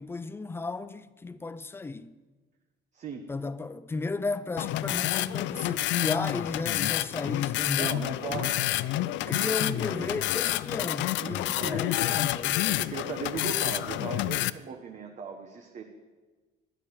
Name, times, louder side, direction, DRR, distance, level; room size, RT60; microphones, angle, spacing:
voice 1, 0.0-2.2 3.3-8.0 8.3-8.5 9.3-12.6, left 3 dB, 10° left, 0.5 m, -34 dB
sound 1, 4.6-14.5, left 16 dB, 80° left, 0.5 m, -29 dB
voice 2, 7.7-8.6 9.0-10.2 11.2-11.9 12.6-15.8, right 6 dB, 40° right, 1.2 m, -38 dB
13.0 x 11.0 x 8.7 m
cardioid pair, 160°, 19 cm